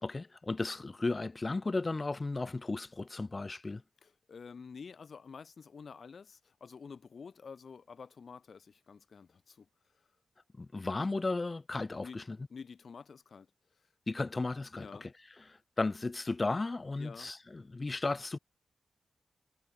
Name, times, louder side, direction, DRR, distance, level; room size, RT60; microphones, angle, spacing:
voice 1, 0.0-3.8 10.6-12.4 14.1-15.1 15.5-18.4, left 3 dB, 25° left, 0.4 m, -35 dB
voice 2, 4.0-9.7 10.0-10.1 12.0-12.2 12.5-13.5 14.7-15.1 17.0-17.3, left 5 dB, 50° left, 1.8 m, -49 dB
wide cardioid pair, 150°, 0 cm